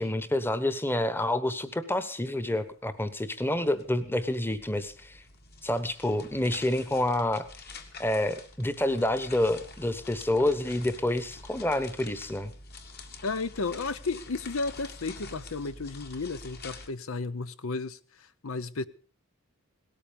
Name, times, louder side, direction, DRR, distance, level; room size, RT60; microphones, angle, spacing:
voice 1, 0.0-5.2 5.6-7.5 8.0-12.5, left 1 dB, 10° left, 1.1 m, -28 dB
sound 1, 2.6-2.7 3.0-16.9, left 3 dB, 45° left, 2.1 m, -47 dB
voice 2, 13.2-18.8, left 3 dB, 65° left, 0.7 m, -33 dB
18.0 x 13.5 x 5.2 m
head